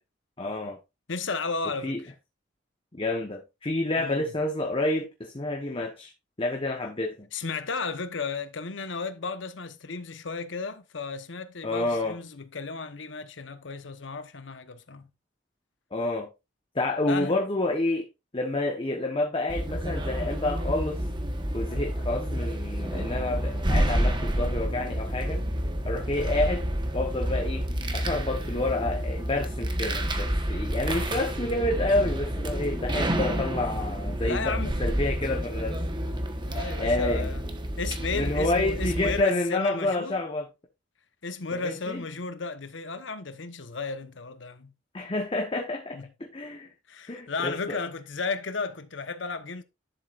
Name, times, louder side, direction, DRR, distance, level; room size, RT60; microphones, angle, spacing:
voice 1, 0.4-0.8 1.8-2.0 2.9-6.1 6.4-7.3 11.6-12.2 15.9-16.3 16.7-18.1 18.3-21.0 21.5-25.4 25.8-26.6 26.9-27.7 27.9-35.8 36.8-37.3 38.1-40.4 41.6-42.0 44.9-46.7 47.1-47.8, left 2 dB, 30° left, 1.0 m, -29 dB
voice 2, 1.1-2.1 3.9-4.3 7.3-15.1 17.1-17.4 30.9-31.2 34.2-34.9 36.0-37.4 37.8-40.2 41.2-44.7 45.9-46.1 46.9-49.6, left 4 dB, 70° left, 1.0 m, -34 dB
sound 1, 19.5-39.2, equal, 25° right, 1.2 m, -29 dB
11.0 x 7.3 x 2.5 m
head